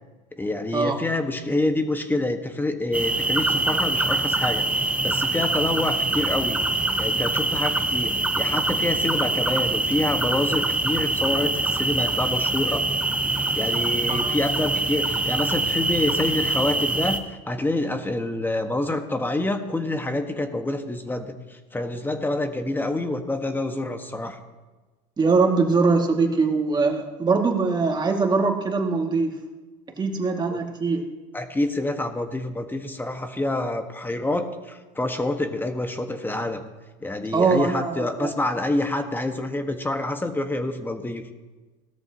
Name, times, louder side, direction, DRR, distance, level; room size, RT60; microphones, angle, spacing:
voice 1, 0.4-6.6 7.0-12.8 13.6-24.4 30.5-30.6 31.3-36.6 37.0-41.2, left 2 dB, 10° left, 7 dB, 1.3 m, -27 dB
sound 1, 2.9-17.2, right 2 dB, 5° right, 1.0 m, -24 dB
voice 2, 25.2-29.4 30.0-31.0 37.3-38.3, right 4 dB, 25° right, 2 dB, 2.0 m, -22 dB
17.5 x 13.0 x 2.9 m, 1.2 s
supercardioid pair, 90°, 17 cm